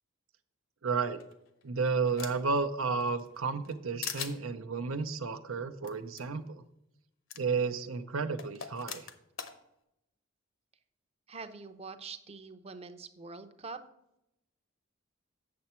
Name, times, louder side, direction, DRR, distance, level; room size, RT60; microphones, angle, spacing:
voice 1, 0.8-1.2 1.6-6.6 7.4-9.1, right 4 dB, 85° right, 9 dB, 0.7 m, -32 dB
sound 1, 1.2-2.6 3.0-3.8 4.0-4.4 5.8-5.9 6.2-6.3 7.3-7.4 8.4-9.5, left 7 dB, 70° left, 0.9 m, -41 dB
voice 2, 11.3-13.8, right 4 dB, 30° right, 10 dB, 0.6 m, -44 dB
8.6 x 6.9 x 4.4 m, 0.85 s
head